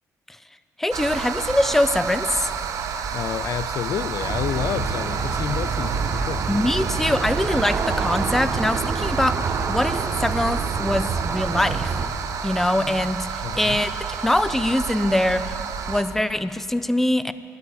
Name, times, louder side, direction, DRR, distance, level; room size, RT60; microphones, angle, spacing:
voice 1, 0.8-2.5 6.5-9.4 9.7-11.9 12.4-13.9 14.2-15.5 15.9-17.3, left 1 dB, 5° left, 13 dB, 0.4 m, -23 dB
sound 1, 0.9-16.0, right 6 dB, 75° right, 1.0 m, -30 dB
voice 2, 3.1-6.4 13.4-13.8, left 10 dB, 65° left, 17 dB, 0.4 m, -29 dB
Aircraft, 4.2-12.1, right 5 dB, 45° right, 1.0 m, -27 dB
13.0 x 12.0 x 8.3 m, 2.5 s
cardioid pair, 135°, 6 cm